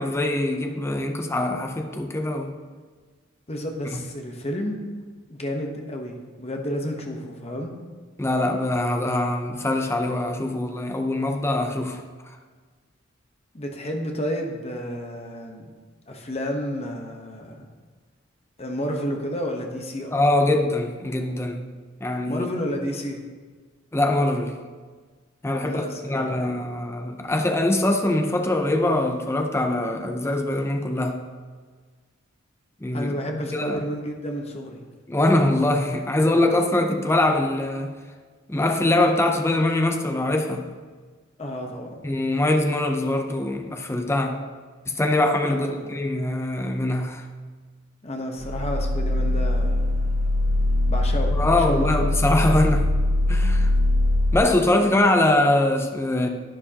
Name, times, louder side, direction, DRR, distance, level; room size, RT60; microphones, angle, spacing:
voice 1, 0.0-2.6 3.9-4.0 8.2-12.0 20.1-21.7 22.0-22.5 23.9-24.6 25.4-31.2 32.8-33.1 33.5-33.8 35.1-37.9 38.5-40.7 42.0-44.4 44.9-47.3 51.3-52.9 53.3-53.7 54.3-56.3, left 1 dB, 10° left, 4 dB, 0.6 m, -23 dB
voice 2, 3.5-4.8 5.3-7.7 13.5-15.7 16.1-17.6 18.6-20.1 22.3-23.2 25.6-26.7 32.9-34.8 41.4-42.0 45.5-45.9 48.0-49.8 50.9-52.1, equal, 30° left, 2 dB, 1.1 m, -31 dB
sound 1, 48.4-54.4, left 1 dB, 50° right, 0.7 m, -22 dB
11.0 x 9.6 x 2.9 m, 1.5 s
head